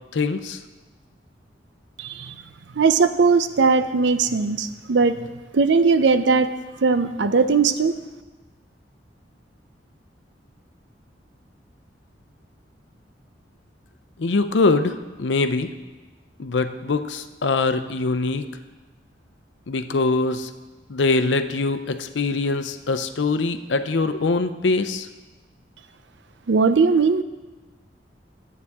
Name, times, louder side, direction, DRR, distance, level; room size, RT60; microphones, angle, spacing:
voice 1, 0.1-0.6 14.2-15.7 16.4-18.4 19.7-20.5 20.9-25.1, left 3 dB, 90° left, 10 dB, 0.6 m, -23 dB
voice 2, 2.8-5.1 5.5-6.5 6.8-7.9 26.5-27.2, right 4 dB, 80° right, 11 dB, 0.5 m, -18 dB
12.5 x 8.2 x 3.6 m, 1.2 s
head